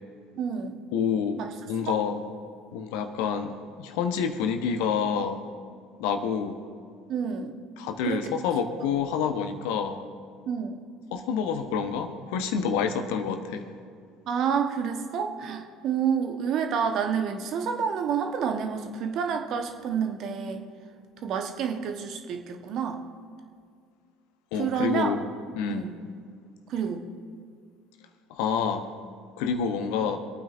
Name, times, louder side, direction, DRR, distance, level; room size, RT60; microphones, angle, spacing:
voice 1, 0.4-0.8 1.4-1.5 1.9-2.0 7.1-7.5 8.1-8.3 10.5-10.8 14.3-20.6 21.2-23.0 24.5-25.1 25.7-25.9 26.7-27.0, right 7 dB, 50° right, 5 dB, 1.1 m, -29 dB
voice 2, 0.9-2.2 2.7-5.4 6.0-6.6 7.8-10.0 11.1-13.7 24.5-25.3 25.5-25.9 28.3-28.9 29.4-30.2, left 6 dB, 65° left, 8 dB, 0.9 m, -28 dB
26.0 x 9.1 x 2.6 m, 2.2 s
figure-of-eight pair, 60°, 0 cm